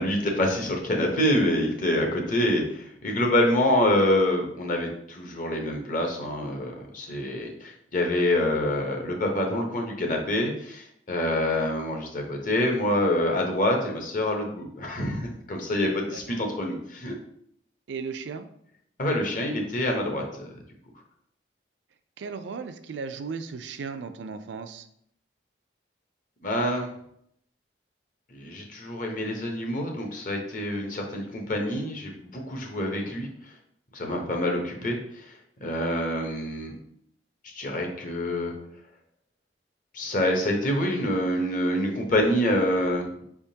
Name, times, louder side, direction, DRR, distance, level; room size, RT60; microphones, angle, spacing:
voice 1, 0.0-17.1 19.0-20.5 26.4-26.9 28.3-33.3 33.9-36.7 37.4-38.5 39.9-43.1, left 1 dB, 50° left, 2 dB, 0.9 m, -26 dB
voice 2, 15.9-16.4 17.9-18.5 22.2-24.9, right 5 dB, 80° right, 9 dB, 0.4 m, -36 dB
5.2 x 3.5 x 2.8 m, 0.71 s
head